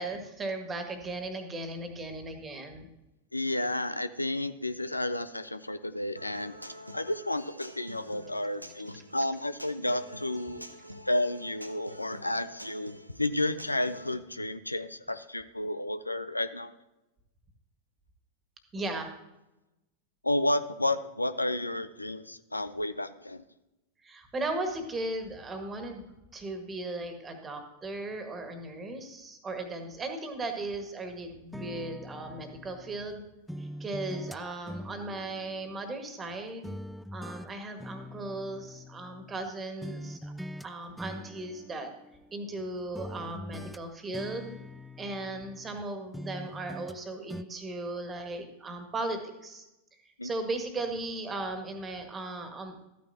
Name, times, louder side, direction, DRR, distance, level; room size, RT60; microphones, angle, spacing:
voice 1, 0.0-2.8 18.7-19.1 24.0-33.2 33.6-36.7 37.1-40.3 40.6-41.9 42.3-44.5 45.0-49.6 50.0-52.8, right 2 dB, 20° right, 6 dB, 1.7 m, -37 dB
voice 2, 3.3-6.5 6.9-10.6 11.1-12.9 13.2-16.7 20.2-23.4 50.2-50.3, left 1 dB, 85° left, 13 dB, 0.5 m, -31 dB
Human voice / Acoustic guitar, 6.2-14.1, equal, 90° right, 0.7 m, -47 dB
sound 1, 31.5-33.1 33.5-36.3 36.6-39.5 39.8-40.7 41.0-42.6 42.9-45.8 46.1-47.0 47.3-47.4, equal, ahead, 0.3 m, -43 dB
13.5 x 9.4 x 2.8 m, 0.95 s
figure-of-eight pair, 90°, 0 cm